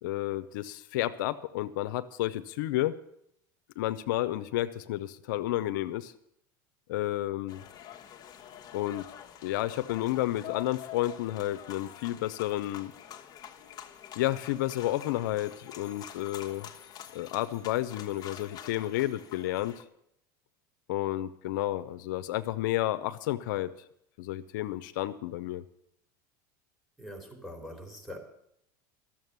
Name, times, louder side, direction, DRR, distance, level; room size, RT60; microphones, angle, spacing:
voice 1, 0.0-2.9 3.8-6.1 6.9-7.6 8.7-9.1 9.4-12.9 14.2-16.7 17.1-19.7 20.9-23.7 24.2-25.6, left 15 dB, 80° left, 11 dB, 0.6 m, -31 dB
sound 1, 7.5-19.8, left 10 dB, 40° left, 1.2 m, -47 dB
voice 2, 27.0-28.2, equal, ahead, 2 dB, 3.1 m, -43 dB
13.0 x 7.4 x 9.3 m, 0.75 s
supercardioid pair, 120°, 10 cm